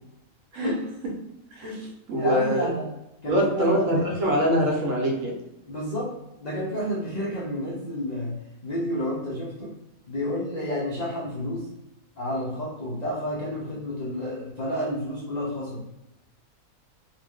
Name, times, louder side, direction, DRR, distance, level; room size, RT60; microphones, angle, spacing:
voice 1, 1.5-2.7 3.3-5.4, equal, 70° right, 0 dB, 1.0 m, -24 dB
voice 2, 2.2-3.0 3.2-4.0 5.7-9.8 10.1-11.7 12.2-15.8, equal, 60° left, -5 dB, 0.4 m, -30 dB
2.5 x 2.0 x 3.5 m, 0.91 s
omnidirectional pair, 1.5 m